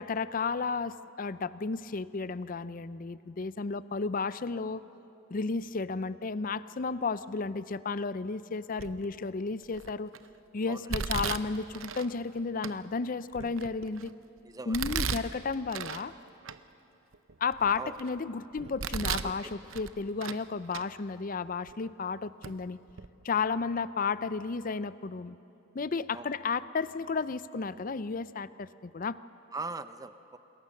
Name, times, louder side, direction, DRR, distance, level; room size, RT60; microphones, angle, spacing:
voice 1, 0.0-4.8 5.3-10.1 10.5-14.1 14.7-16.1 17.4-22.8 23.2-25.4 25.7-29.2, left 4 dB, 45° left, 16 dB, 0.5 m, -33 dB
Domestic sounds home sounds, 8.8-9.2 9.7-10.2 10.9-12.1 12.6-12.7 13.3-14.1 14.7-16.1 16.4-16.6 17.1-18.1 18.6-19.3 19.7-20.4 20.7-20.9 21.7-21.8 22.4-22.5 22.9-23.1, right 6 dB, 80° right, 0.8 m, -35 dB
voice 2, 14.4-14.8 17.8-17.9 19.2-19.5 26.1-26.3 29.5-30.4, right 3 dB, 20° right, 11 dB, 0.7 m, -40 dB
27.0 x 21.5 x 6.6 m, 3.0 s
head